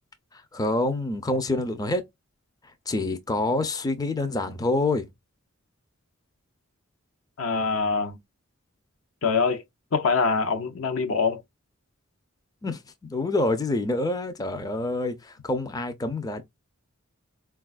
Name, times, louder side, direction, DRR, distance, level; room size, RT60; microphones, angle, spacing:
voice 1, 0.3-2.0 2.9-5.1 12.6-16.4, left 2 dB, 20° left, 0.4 m, -27 dB
voice 2, 7.4-8.2 9.2-9.6 9.9-11.4, left 4 dB, 70° left, 0.6 m, -24 dB
4.0 x 2.3 x 2.3 m
head